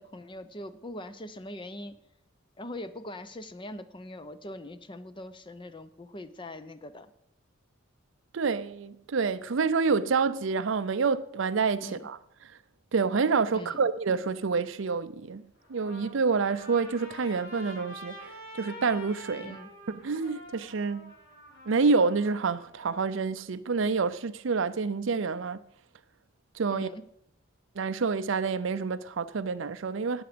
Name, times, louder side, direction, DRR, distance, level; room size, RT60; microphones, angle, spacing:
voice 1, 0.0-2.0 2.6-7.1 11.8-12.0 13.5-13.9 19.4-19.7 26.7-27.0, left 1 dB, 25° left, 0.7 m, -42 dB
voice 2, 8.3-12.2 12.9-19.6 20.0-21.1 21.7-25.6 26.5-26.9 27.8-30.2, right 4 dB, 70° right, 0.5 m, -28 dB
Trumpet, 15.6-23.0, left 1 dB, 65° left, 6.8 m, -47 dB
13.5 x 9.6 x 5.1 m
head